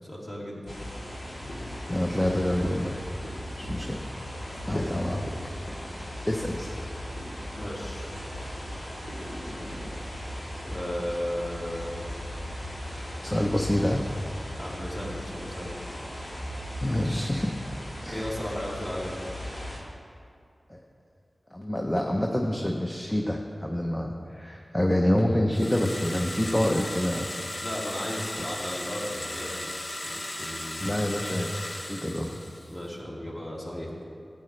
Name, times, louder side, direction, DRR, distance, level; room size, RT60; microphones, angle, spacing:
voice 1, 0.0-0.7 7.5-8.1 10.6-12.1 14.5-15.7 18.1-19.2 27.6-31.0 32.7-34.0, equal, 30° left, -6 dB, 2.7 m, -35 dB
sound 1, 0.7-19.8, equal, 85° left, 2.9 m, -37 dB
voice 2, 1.9-3.0 3.3-4.1 4.7-5.3 6.3-6.8 13.2-14.0 16.8-17.5 18.0-18.3 20.7-20.8 21.5-27.3 30.8-32.4, left 1 dB, 15° left, 0 dB, 0.7 m, -27 dB
sound 2, 25.5-32.8, left 1 dB, 55° left, 1.0 m, -36 dB
15.0 x 8.8 x 3.2 m, 2.4 s
wide cardioid pair, 70°, 0 cm